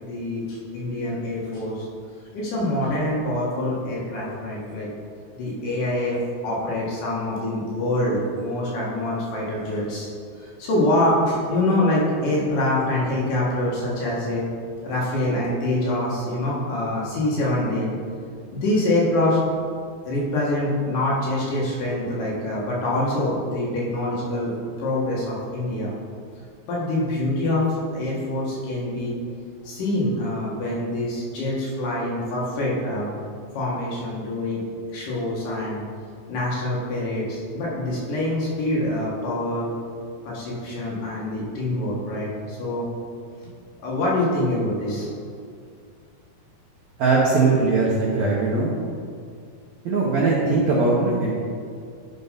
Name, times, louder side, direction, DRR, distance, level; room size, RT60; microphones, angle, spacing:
voice 1, 0.0-1.9 2.3-4.9 5.3-6.2 6.4-10.1 10.4-14.5 14.8-17.9 18.5-19.4 20.0-24.5 24.8-25.9 26.7-27.6 27.9-29.1 29.6-33.1 33.5-34.6 34.9-35.8 36.3-39.7 40.2-42.9 43.8-45.1, left 1 dB, 65° left, -5 dB, 3.1 m, -25 dB
voice 2, 47.0-48.7 49.8-51.4, right 3 dB, 70° right, -5 dB, 1.7 m, -20 dB
10.5 x 4.4 x 5.2 m, 2.2 s
omnidirectional pair, 4.3 m